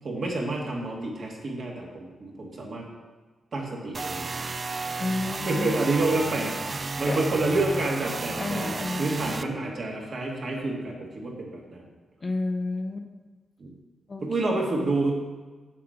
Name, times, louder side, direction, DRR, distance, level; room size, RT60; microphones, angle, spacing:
voice 1, 0.0-2.9 3.5-4.4 5.5-11.9 13.6-13.7 14.2-15.1, right 2 dB, 50° right, -2 dB, 2.1 m, -29 dB
sound 1, 3.9-9.4, right 3 dB, 35° right, 0.4 m, -32 dB
voice 2, 5.0-5.8 6.1-6.2 7.1-7.2 8.4-9.1 12.2-13.1 14.1-14.6, left 2 dB, 30° left, 5 dB, 0.7 m, -31 dB
7.6 x 6.5 x 5.9 m, 1.3 s
wide cardioid pair, 130°, 0 cm